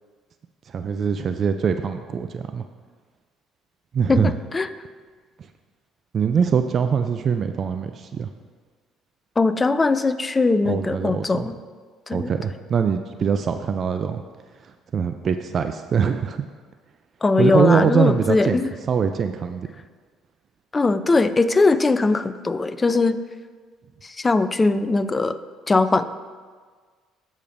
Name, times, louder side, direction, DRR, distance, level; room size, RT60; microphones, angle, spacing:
voice 1, 0.7-2.6 3.9-4.4 6.1-8.3 10.6-11.5 12.1-14.2 14.9-16.4 17.4-18.6 18.9-19.7, right 6 dB, 50° right, 8 dB, 0.4 m, -23 dB
voice 2, 4.1-4.7 9.4-11.5 12.1-12.3 17.2-18.7 20.7-23.2 24.0-25.4 25.7-26.0, left 3 dB, 25° left, 12 dB, 0.5 m, -20 dB
14.5 x 5.1 x 2.6 m, 1.5 s
hypercardioid pair, 65°, 0 cm